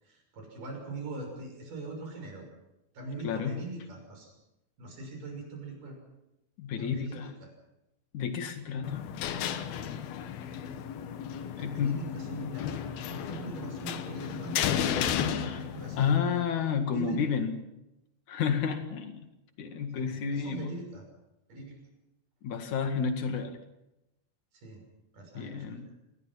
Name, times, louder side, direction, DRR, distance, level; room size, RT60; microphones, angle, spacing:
voice 1, 0.0-2.5 2.9-4.3 4.8-6.0 6.8-7.5 9.8-9.9 11.6-14.6 15.1-16.4 16.9-17.2 20.0-21.0 21.5-21.7 24.5-24.8 25.1-25.9, right 2 dB, 60° right, 2 dB, 7.8 m, -42 dB
voice 2, 3.2-3.6 6.6-7.3 8.1-9.1 9.8-9.9 11.6-12.0 15.4-15.6 16.0-17.6 18.3-19.2 19.6-20.8 22.4-23.6 25.3-25.9, left 6 dB, 55° left, 6 dB, 3.1 m, -31 dB
sound 1, 8.8-16.2, left 9 dB, 80° left, 3.1 m, -33 dB
27.0 x 20.0 x 5.8 m, 0.94 s
omnidirectional pair, 4.3 m